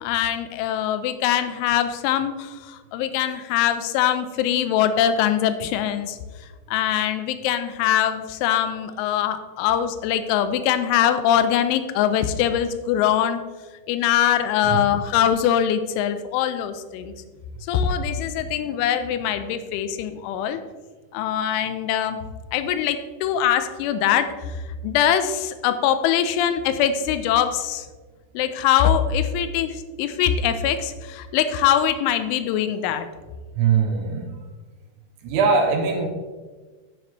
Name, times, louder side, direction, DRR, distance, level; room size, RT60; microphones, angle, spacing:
voice 1, 0.0-6.2 6.7-13.4 13.9-17.1 17.7-20.6 21.1-22.2 22.5-27.9 28.3-33.1, left 10 dB, 85° left, 10 dB, 3.0 m, -22 dB
voice 2, 33.6-34.3 35.2-36.1, right 5 dB, 85° right, 0 dB, 3.7 m, -21 dB
10.5 x 10.0 x 3.2 m, 1.4 s
omnidirectional pair, 5.8 m